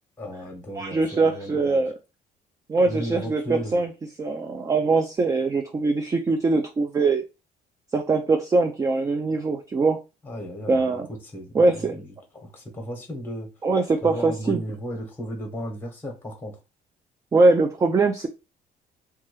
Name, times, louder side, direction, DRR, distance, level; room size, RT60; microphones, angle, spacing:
voice 1, 0.2-1.8 2.8-3.8 10.2-13.5 14.0-16.6, equal, 10° left, 1.0 m, -35 dB
voice 2, 0.8-2.0 2.7-3.9 4.2-7.2 7.9-10.0 10.7-11.1 11.5-12.0 13.6-14.6 17.3-18.3, right 3 dB, 20° right, 0.4 m, -22 dB
2.9 x 2.3 x 3.0 m
cardioid pair, 110°, 17 cm